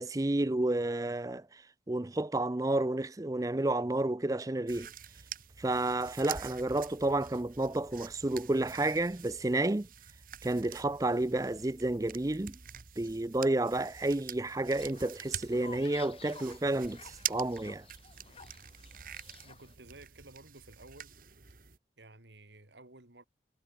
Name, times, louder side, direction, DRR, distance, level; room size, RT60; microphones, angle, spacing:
voice 1, 0.0-1.6 1.9-4.9 5.6-9.9 10.4-12.6 13.0-17.8, right 2 dB, 20° right, 0.5 m, -31 dB
sound 1, 4.7-21.8, right 9 dB, 50° right, 1.6 m, -46 dB
Fowl, 14.7-19.7, left 5 dB, 30° left, 1.4 m, -53 dB
voice 2, 19.4-21.1 22.0-23.2, right 2 dB, 80° right, 3.2 m, -54 dB
head